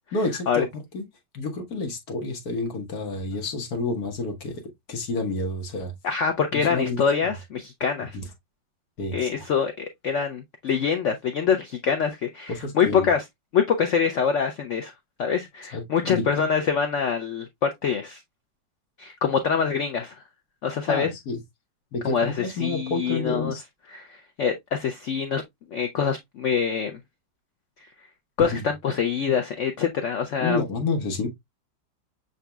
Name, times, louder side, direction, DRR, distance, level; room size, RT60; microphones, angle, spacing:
voice 1, 0.1-1.0 1.3-4.5 4.9-5.9 6.5-7.3 8.1-8.2 9.0-9.4 12.5-13.1 15.7-16.3 20.9-21.4 21.9-23.6 28.4-28.6 30.4-31.3, left 3 dB, 55° left, 1.6 m, -29 dB
voice 2, 6.0-8.2 9.1-13.2 13.5-14.9 15.2-18.2 19.0-20.1 20.6-21.1 22.0-23.5 23.9-25.4 25.7-27.0 28.4-30.6, left 6 dB, 85° left, 0.6 m, -25 dB
6.0 x 4.0 x 2.2 m
omnidirectional pair, 2.0 m